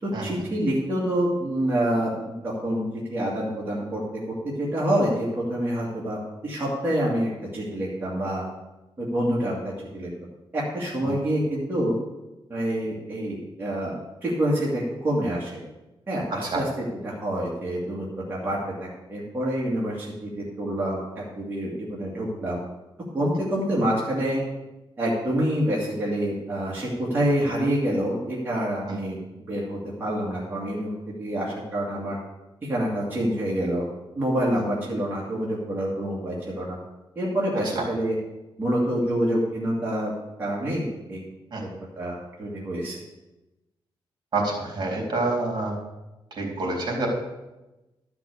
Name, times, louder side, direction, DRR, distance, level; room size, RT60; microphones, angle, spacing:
voice 1, 0.0-2.8 3.1-4.0 4.6-6.2 6.4-8.4 9.0-10.1 10.5-12.0 12.5-15.6 16.1-18.6 19.1-22.6 23.1-24.4 25.0-29.2 29.5-30.9 31.2-32.2 32.6-33.8 34.2-36.8 37.2-38.2 38.6-40.1 40.4-41.2 42.0-43.0, right 1 dB, 25° right, -6 dB, 2.3 m, -27 dB
voice 2, 44.3-45.7 46.4-47.1, right 2 dB, 50° right, -1 dB, 3.6 m, -27 dB
12.5 x 5.9 x 6.9 m, 1.0 s
wide cardioid pair, 155°, 9 cm